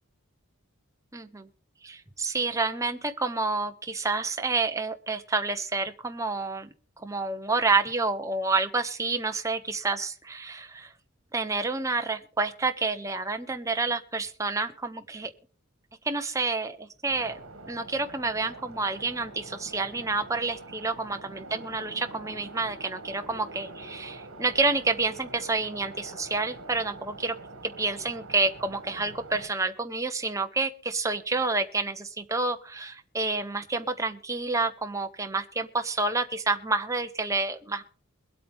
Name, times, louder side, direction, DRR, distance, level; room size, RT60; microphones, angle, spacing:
voice 1, 1.1-1.5 1.8-6.7 7.0-10.9 11.3-15.3 16.0-17.4 17.7-27.4 27.6-37.8, right 3 dB, 15° right, 6 dB, 1.0 m, -29 dB
sound 1, 17.1-29.5, right 2 dB, 65° right, 1.9 m, -45 dB
22.5 x 8.5 x 3.6 m, 0.41 s
head